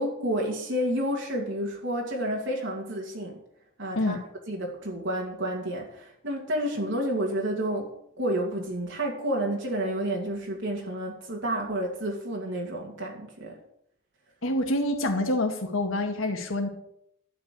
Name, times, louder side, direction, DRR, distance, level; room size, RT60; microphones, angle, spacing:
voice 1, 0.0-3.4 3.8-4.2 4.5-13.6, right 1 dB, 65° right, 0 dB, 2.3 m, -30 dB
voice 2, 14.4-16.7, left 1 dB, 80° left, 5 dB, 2.1 m, -26 dB
11.5 x 5.8 x 9.0 m, 0.73 s
head